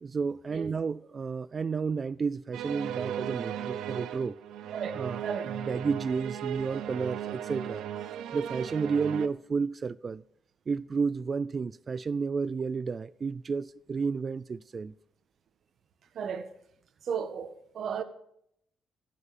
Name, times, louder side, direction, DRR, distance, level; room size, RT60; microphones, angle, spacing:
voice 1, 0.0-4.4 4.9-7.8 8.3-10.2 10.7-14.9, right 5 dB, 40° right, 0.4 m, -31 dB
sound 1, 2.5-9.3, right 10 dB, 85° right, 0.7 m, -36 dB
voice 2, 16.1-16.5 17.1-18.0, right 7 dB, 60° right, 1.4 m, -34 dB
15.0 x 6.2 x 7.3 m
cardioid pair, 90°, 0 cm